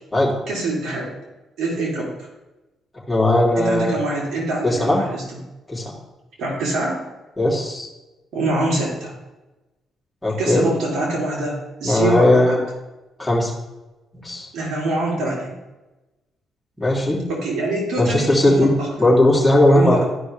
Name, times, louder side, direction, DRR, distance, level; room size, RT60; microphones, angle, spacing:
voice 1, 0.5-1.1 1.6-2.1 3.6-5.2 6.4-7.0 8.3-9.1 10.4-12.6 14.5-15.5 17.3-18.9 19.7-20.0, right 2 dB, 70° right, -4 dB, 3.2 m, -24 dB
voice 2, 3.1-3.9 4.6-5.0 5.7-5.9 7.4-7.9 10.2-10.6 11.8-12.6 13.2-13.5 14.1-14.5 16.8-17.2 18.0-18.7 19.0-20.0, left 1 dB, 10° left, -4 dB, 3.0 m, -17 dB
13.5 x 5.2 x 3.3 m, 1.1 s
cardioid pair, 90°, 0 cm